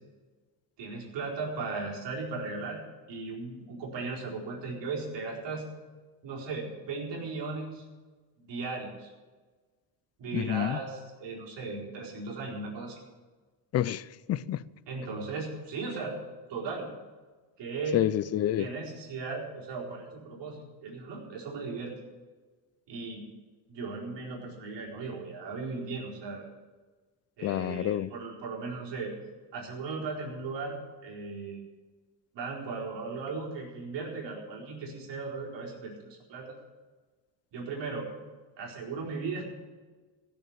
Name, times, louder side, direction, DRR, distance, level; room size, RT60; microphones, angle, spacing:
voice 1, 0.8-2.8 3.1-5.7 6.2-7.9 8.4-9.1 10.2-13.0 14.9-16.2 16.5-16.9 17.6-18.0 18.6-21.9 22.9-23.3 23.7-26.5 27.4-29.1 29.5-31.6 32.3-36.5 37.5-38.1 38.6-39.4, right 4 dB, 60° right, -3 dB, 4.5 m, -37 dB
voice 2, 10.3-10.8 13.7-14.6 17.9-18.7 27.4-28.1, left 12 dB, 35° left, 19 dB, 0.4 m, -28 dB
15.5 x 7.2 x 8.8 m, 1.4 s
cardioid pair, 125°, 48 cm